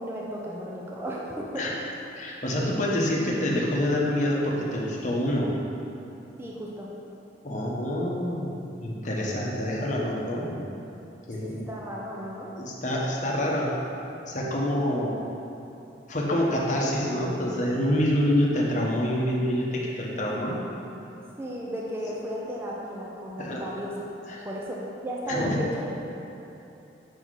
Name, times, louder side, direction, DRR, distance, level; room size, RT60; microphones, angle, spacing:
voice 1, 0.0-1.7 6.4-6.9 11.4-12.5 21.4-24.1 24.4-26.2, equal, 15° right, -4 dB, 0.6 m, -34 dB
voice 2, 2.2-5.5 7.4-10.6 11.3-11.7 12.6-13.7 14.3-15.2 16.1-20.6 23.4-23.7 24.3-24.5 25.3-25.6, left 1 dB, 40° left, -3 dB, 0.9 m, -26 dB
6.6 x 4.2 x 4.7 m, 2.9 s
head